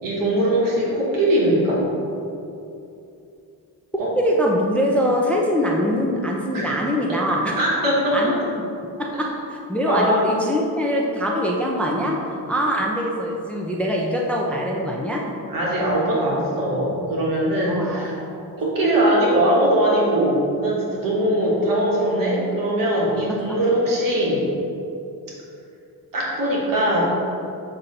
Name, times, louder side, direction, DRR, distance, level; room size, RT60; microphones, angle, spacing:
voice 1, 0.0-1.8 4.0-4.1 6.5-6.8 7.1-7.2 7.6-8.3 9.9-10.4 15.5-18.2 18.6-24.5 26.1-27.0, right 1 dB, 65° right, -5 dB, 1.3 m, -21 dB
voice 2, 4.2-7.6 8.1-8.4 9.0-12.2 12.5-15.2 17.7-18.1 18.4-18.5, equal, 5° left, -2 dB, 0.4 m, -23 dB
7.2 x 2.7 x 5.3 m, 2.8 s
wide cardioid pair, 140°, 36 cm